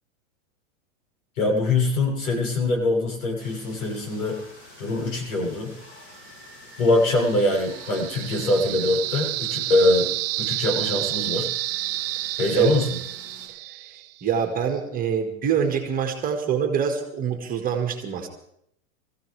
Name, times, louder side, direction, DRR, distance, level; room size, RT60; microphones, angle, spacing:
voice 1, 1.4-4.4 4.8-5.7 6.8-10.1 10.4-11.5 12.4-13.0, left 2 dB, 80° left, 0 dB, 8.0 m, -23 dB
sound 1, 3.4-13.5, left 1 dB, 30° left, 7.9 m, -47 dB
sound 2, 7.2-14.2, right 18 dB, 45° right, 0.6 m, -30 dB
voice 2, 13.7-18.3, right 7 dB, 20° right, 4 dB, 1.9 m, -25 dB
24.0 x 15.0 x 3.4 m, 0.73 s
supercardioid pair, 145°, 42 cm